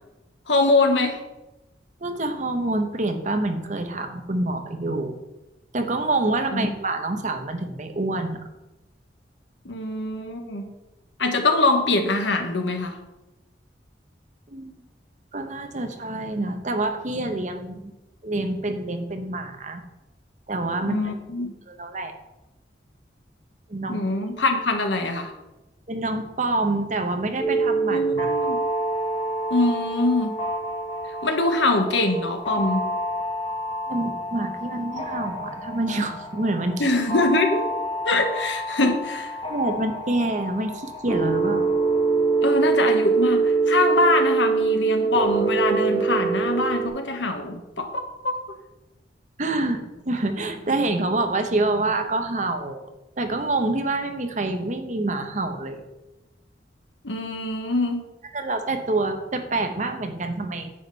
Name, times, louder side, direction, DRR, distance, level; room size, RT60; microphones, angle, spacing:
voice 1, 0.5-1.2 6.5-6.7 9.6-10.7 11.2-13.0 20.8-21.5 23.9-25.3 27.9-28.6 29.5-30.4 31.2-32.9 36.8-37.6 38.0-39.2 42.4-48.4 57.0-58.0, left 2 dB, 90° left, 5 dB, 1.3 m, -23 dB
voice 2, 2.0-5.2 5.7-8.4 14.5-14.8 15.3-17.9 18.2-19.8 20.5-21.1 21.7-22.1 23.7-24.0 25.9-28.3 33.9-36.9 38.8-38.9 39.5-41.7 49.4-52.9 53.2-55.8 58.3-60.7, right 2 dB, 45° right, 6 dB, 1.0 m, -27 dB
sound 1, 27.4-46.9, right 3 dB, 30° left, 1.4 m, -25 dB
9.9 x 7.3 x 4.1 m, 1.0 s
head